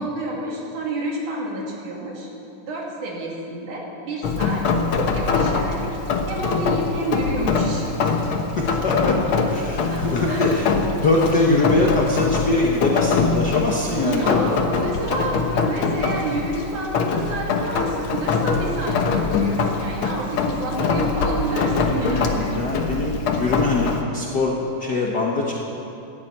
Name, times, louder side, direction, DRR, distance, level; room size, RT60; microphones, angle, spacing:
voice 1, 0.0-2.3 2.6-4.7 4.9-5.9 6.3-7.9 9.9-10.6 13.8-22.5, right 1 dB, 65° right, -2 dB, 3.8 m, -29 dB
Rain, 4.2-24.0, left 4 dB, 70° left, 1.2 m, -23 dB
voice 2, 8.0-10.6 11.0-14.4 22.5-25.5, left 2 dB, 90° left, -3 dB, 0.9 m, -22 dB
15.0 x 11.0 x 8.7 m, 2.8 s
omnidirectional pair, 4.0 m